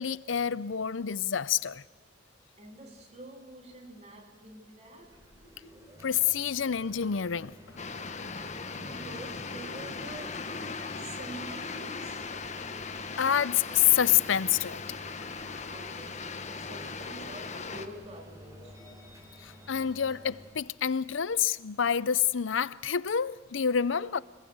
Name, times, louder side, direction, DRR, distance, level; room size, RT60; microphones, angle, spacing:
voice 1, 0.0-1.8 6.0-7.5 13.2-14.8 19.4-24.2, left 9 dB, 80° left, 0.6 m, -27 dB
voice 2, 2.6-5.4 8.7-10.5 11.0-12.3 15.7-18.9 23.9-24.2, right 1 dB, 35° right, 3.6 m, -47 dB
sound 1, 4.9-20.5, equal, 15° right, 4.3 m, -51 dB
sound 2, 7.8-17.9, left 4 dB, 40° left, 1.4 m, -39 dB
sound 3, 10.4-18.9, equal, 15° left, 4.3 m, -57 dB
26.5 x 20.5 x 8.0 m
head